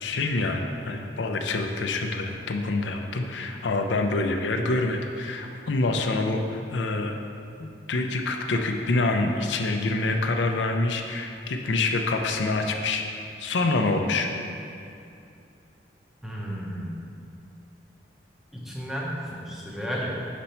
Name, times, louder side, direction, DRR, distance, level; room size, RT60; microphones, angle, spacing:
voice 1, 0.0-7.2 7.6-13.0 13.4-14.3, left 2 dB, 85° left, 4 dB, 0.5 m, -26 dB
voice 2, 16.2-17.1 18.5-20.3, equal, ahead, -4 dB, 0.7 m, -33 dB
5.6 x 5.1 x 4.3 m, 2.6 s
head